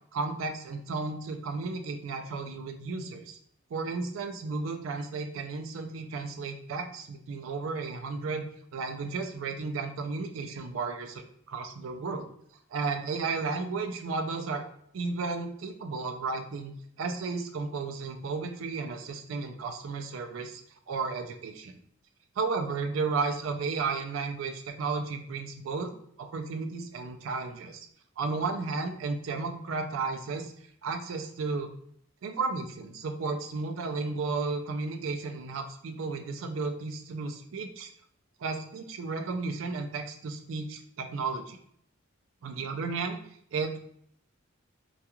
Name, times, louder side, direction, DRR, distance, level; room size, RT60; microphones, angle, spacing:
voice 1, 0.1-3.4 3.7-8.5 8.7-12.3 12.7-14.6 14.9-20.6 20.9-21.8 22.4-25.9 26.2-27.8 28.2-30.5 30.8-31.7 32.2-37.9 38.4-41.6 42.4-43.2 43.5-43.8, right 4 dB, 75° right, 6 dB, 0.4 m, -33 dB
2.3 x 2.3 x 2.9 m, 0.66 s
head